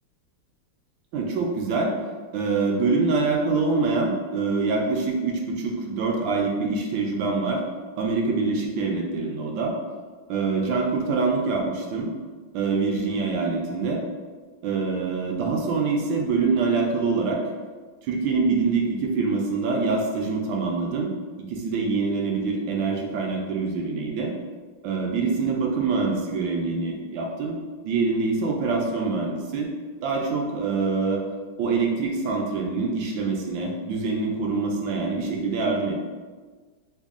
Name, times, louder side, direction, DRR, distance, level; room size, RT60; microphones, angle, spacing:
voice 1, 1.1-2.0 2.3-7.6 8.0-9.8 10.3-12.1 12.5-14.0 14.6-17.4 18.0-21.1 21.5-24.3 24.8-27.6 27.8-29.7 30.0-31.2 31.6-36.0, right 4 dB, 75° right, 0 dB, 1.2 m, -25 dB
3.5 x 2.2 x 3.5 m, 1.4 s
omnidirectional pair, 2.2 m